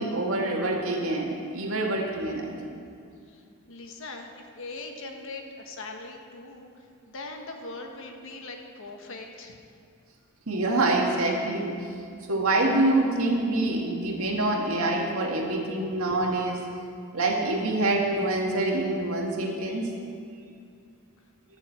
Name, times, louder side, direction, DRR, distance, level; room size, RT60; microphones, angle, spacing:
voice 1, 0.0-2.5 2.8-2.9 10.5-12.0 12.3-16.6 17.1-19.9, right 2 dB, 75° right, 0 dB, 1.9 m, -26 dB
voice 2, 3.3-9.6, left 3 dB, 65° left, 3 dB, 1.3 m, -41 dB
12.5 x 6.5 x 7.8 m, 2.3 s
head